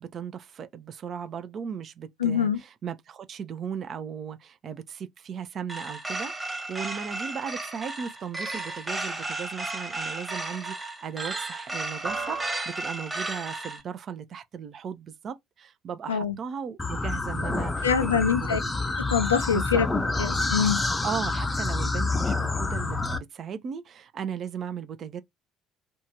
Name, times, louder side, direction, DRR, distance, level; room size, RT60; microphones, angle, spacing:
voice 1, 0.0-18.6 19.5-19.8 21.0-25.2, right 7 dB, 45° right, 0.5 m, -37 dB
voice 2, 2.2-2.6 16.1-16.3 17.8-18.6 19.1-19.9 20.2-20.8, left 7 dB, 80° left, 0.3 m, -24 dB
sound 1, 5.7-13.8, right 2 dB, 15° right, 1.1 m, -33 dB
sound 2, 16.8-23.2, left 3 dB, 20° left, 0.5 m, -28 dB
2.7 x 2.3 x 2.8 m
figure-of-eight pair, 55°, 0 cm